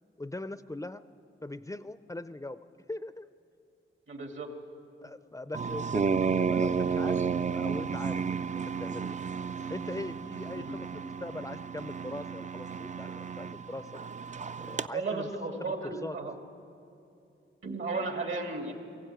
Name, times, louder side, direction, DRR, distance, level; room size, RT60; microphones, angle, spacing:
voice 1, 0.2-1.0 1.4-2.6 2.9-3.3 5.0-7.2 7.5-9.2 9.7-13.1 13.4-14.0 14.6-15.3 15.6-16.2, left 2 dB, 15° left, 12 dB, 0.5 m, -41 dB
voice 2, 4.1-4.5 10.5-10.7 14.9-16.3 17.6-18.7, right 3 dB, 65° right, 3 dB, 2.5 m, -34 dB
sound 1, 5.5-14.9, right 5 dB, 35° right, 0.5 m, -32 dB
20.0 x 15.5 x 9.1 m, 2.6 s
cardioid pair, 75°, 21 cm